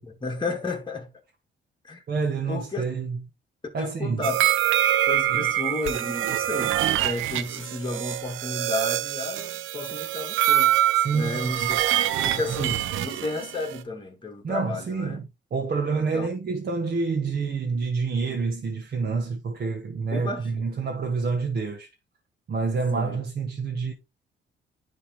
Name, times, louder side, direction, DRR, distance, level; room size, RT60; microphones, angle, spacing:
voice 1, 0.0-1.1 1.8-2.0 2.5-2.8 3.8-4.5 5.1-10.8 11.1-11.8 12.2-15.2 16.1-16.3 20.1-20.6 22.9-23.2, left 3 dB, 25° left, 2.3 m, -33 dB
voice 2, 2.1-3.2 3.7-4.3 5.3-5.5 10.9-11.8 12.3-12.8 14.4-15.2 15.5-21.9 22.5-23.9, right 4 dB, 50° right, 1.4 m, -28 dB
sound 1, 4.2-13.8, right 12 dB, 85° right, 0.6 m, -25 dB
10.5 x 3.5 x 3.1 m
cardioid pair, 90°, 20 cm